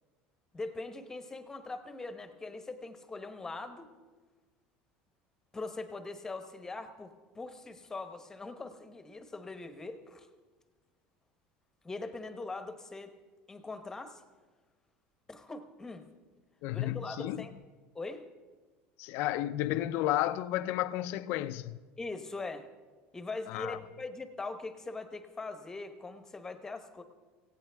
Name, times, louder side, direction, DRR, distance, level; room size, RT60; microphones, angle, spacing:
voice 1, 0.5-3.9 5.5-10.3 11.8-13.1 13.5-14.2 15.3-16.1 16.7-17.5 17.9-18.3 22.0-22.7 23.1-27.0, left 3 dB, 10° left, 1.0 m, -41 dB
voice 2, 16.6-17.5 19.0-21.8 23.5-23.8, left 14 dB, 60° left, 0.5 m, -32 dB
17.5 x 16.5 x 3.5 m
cardioid pair, 150°, 4 cm